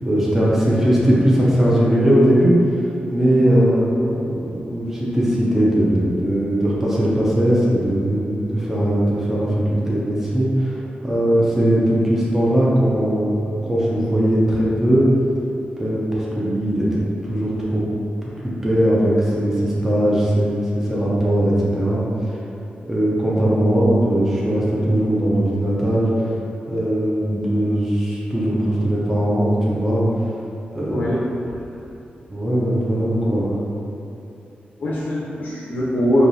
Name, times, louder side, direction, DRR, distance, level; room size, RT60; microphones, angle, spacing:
voice 1, 0.0-2.6 3.1-15.1 15.8-17.8 18.4-22.4 22.9-26.1 26.7-30.0 30.7-31.0 32.3-33.6, right 1 dB, 10° right, -7 dB, 0.6 m, -19 dB
voice 2, 3.4-3.8 30.9-31.3 34.8-36.3, equal, 65° left, -6 dB, 0.6 m, -22 dB
4.6 x 2.7 x 2.6 m, 2.8 s
wide cardioid pair, 150°, 3 cm